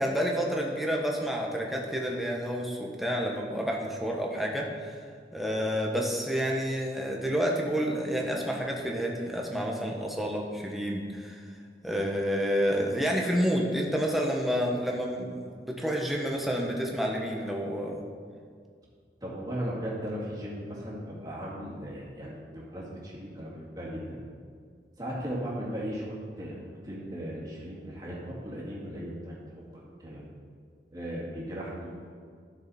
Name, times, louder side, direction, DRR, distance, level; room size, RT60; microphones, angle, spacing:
voice 1, 0.0-5.0 5.3-11.4 11.8-18.0, equal, ahead, -1 dB, 1.1 m, -29 dB
voice 2, 19.2-24.2 25.0-26.5 26.8-29.7 30.0-30.3 30.9-32.1, equal, 20° right, -5 dB, 2.3 m, -37 dB
13.0 x 6.8 x 4.3 m, 2.1 s
head